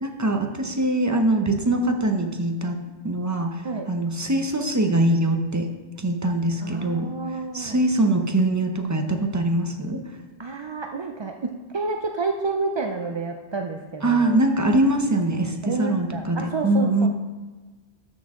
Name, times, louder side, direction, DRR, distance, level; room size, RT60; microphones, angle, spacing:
voice 1, 0.0-2.8 3.0-5.7 6.0-7.1 7.3-10.0 14.0-17.1, right 1 dB, 20° right, 4 dB, 0.7 m, -23 dB
voice 2, 6.6-7.8 10.4-14.4 15.6-17.1, right 3 dB, 45° right, 3 dB, 0.3 m, -29 dB
12.5 x 6.0 x 3.7 m, 1.3 s
omnidirectional pair, 1.1 m